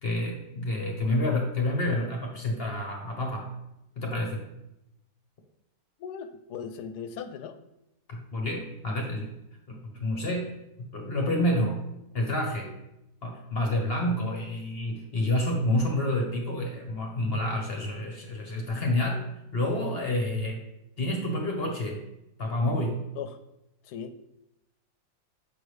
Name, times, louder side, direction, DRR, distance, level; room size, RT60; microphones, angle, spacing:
voice 1, 0.0-3.5 4.0-4.5 8.1-9.3 9.7-10.5 10.8-11.8 12.1-12.7 13.2-19.2 19.5-20.6 21.0-22.0 22.4-23.1, left 1 dB, 45° left, 1 dB, 0.9 m, -28 dB
voice 2, 6.0-7.5 23.2-23.3 23.9-24.1, left 7 dB, 75° left, 10 dB, 1.1 m, -38 dB
6.9 x 5.5 x 3.2 m, 0.88 s
omnidirectional pair, 1.8 m